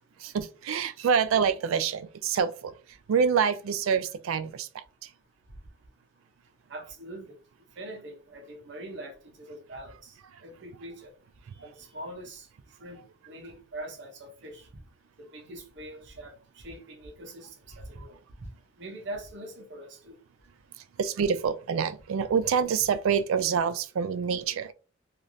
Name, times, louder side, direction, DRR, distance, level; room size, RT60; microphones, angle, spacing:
voice 1, 0.2-2.7 3.1-4.7 21.0-24.7, right 6 dB, 85° right, 0.3 m, -26 dB
voice 2, 6.7-7.4 7.8-11.1 11.6-12.5 12.8-14.7 15.2-18.1 18.8-20.1, right 1 dB, 55° right, 0.7 m, -43 dB
3.1 x 2.4 x 2.6 m
head